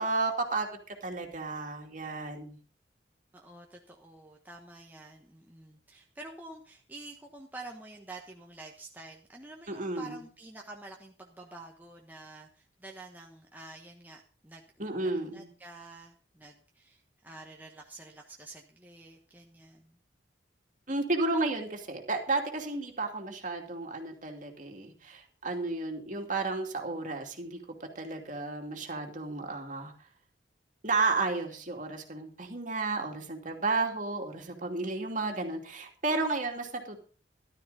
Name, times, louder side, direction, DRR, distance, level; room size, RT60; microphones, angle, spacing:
voice 1, 0.0-2.6 9.7-10.2 14.8-15.5 20.9-29.9 30.8-37.0, right 3 dB, 45° right, 3 dB, 2.6 m, -32 dB
voice 2, 3.3-19.9, right 2 dB, 10° right, 0 dB, 1.2 m, -48 dB
14.0 x 12.5 x 4.1 m, 0.38 s
head